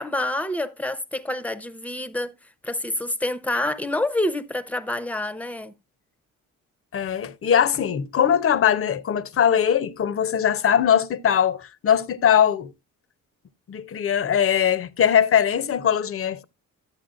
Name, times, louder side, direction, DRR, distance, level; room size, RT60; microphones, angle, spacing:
voice 1, 0.0-2.3 2.6-5.7, left 1 dB, 5° left, 0.8 m, -27 dB
voice 2, 6.9-12.7 13.7-16.4, left 9 dB, 40° left, 0.8 m, -21 dB
11.5 x 8.3 x 2.4 m
supercardioid pair, 80°, 33 cm